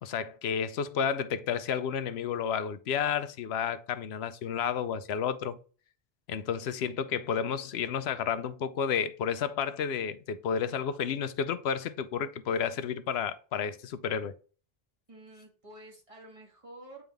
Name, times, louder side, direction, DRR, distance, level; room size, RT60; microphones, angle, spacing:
voice 1, 0.0-5.6 6.3-14.3, left 7 dB, 85° left, 0.8 m, -31 dB
voice 2, 15.1-17.0, right 1 dB, 30° right, 2.1 m, -50 dB
8.8 x 3.6 x 3.5 m
omnidirectional pair, 1.0 m